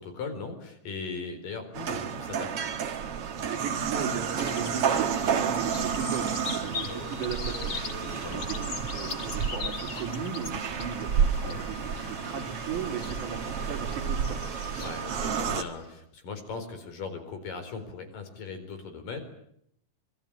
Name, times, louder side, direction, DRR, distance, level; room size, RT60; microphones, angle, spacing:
voice 1, 0.0-2.5 8.0-8.5 14.8-19.2, left 4 dB, 90° left, 7 dB, 6.0 m, -39 dB
sound 1, 1.7-15.6, right 7 dB, 50° right, 2.2 m, -31 dB
voice 2, 3.5-7.7 8.3-8.6 8.9-11.1 11.4-14.4, right 7 dB, 65° right, 3 dB, 4.1 m, -36 dB
sound 2, 4.4-15.9, left 5 dB, 40° left, 1.7 m, -40 dB
26.5 x 22.5 x 8.7 m, 0.72 s
omnidirectional pair, 3.8 m